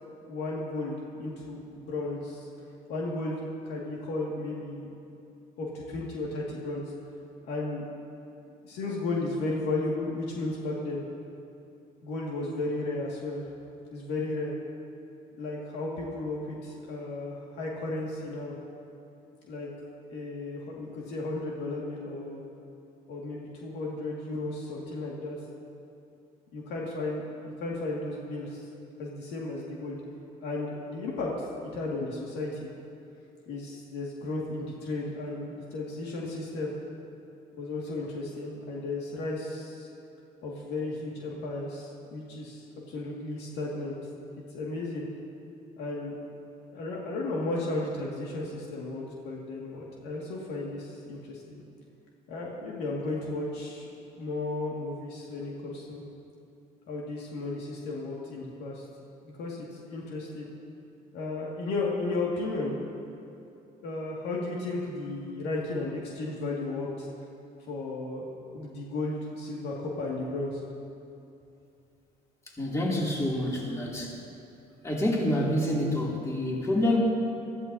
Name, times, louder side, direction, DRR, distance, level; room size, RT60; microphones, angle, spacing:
voice 1, 0.2-2.5 2.9-4.9 5.6-6.9 7.5-7.8 8.6-11.0 12.0-13.4 13.9-14.5 15.4-18.5 19.5-19.7 20.1-22.4 23.1-25.4 26.5-28.7 29.0-30.0 30.4-32.7 33.5-36.7 37.6-39.9 40.4-44.0 44.5-45.1 45.8-46.1 46.7-51.6 52.3-53.9 54.2-56.0 56.9-58.8 59.4-60.5 61.1-62.8 63.8-67.1 67.7-70.6, left 2 dB, 85° left, -3 dB, 2.1 m, -34 dB
voice 2, 72.6-74.2 74.8-77.0, left 1 dB, 15° left, -4 dB, 2.7 m, -27 dB
22.0 x 14.5 x 2.8 m, 2.7 s
cardioid pair, 110°, 17 cm